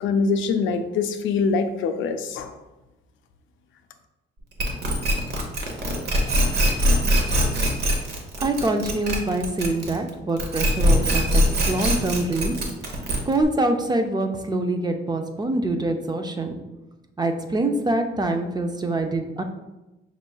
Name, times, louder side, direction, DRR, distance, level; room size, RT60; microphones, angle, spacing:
voice 1, 0.0-2.6, left 4 dB, 75° left, 7 dB, 0.4 m, -24 dB
sound 1, 4.6-10.1 10.4-13.4, equal, 55° right, 0.9 m, -22 dB
voice 2, 8.4-12.5 13.3-16.5 17.2-19.4, right 2 dB, 20° right, 5 dB, 0.5 m, -25 dB
5.4 x 3.0 x 2.3 m, 1.0 s
cardioid pair, 90°, 20 cm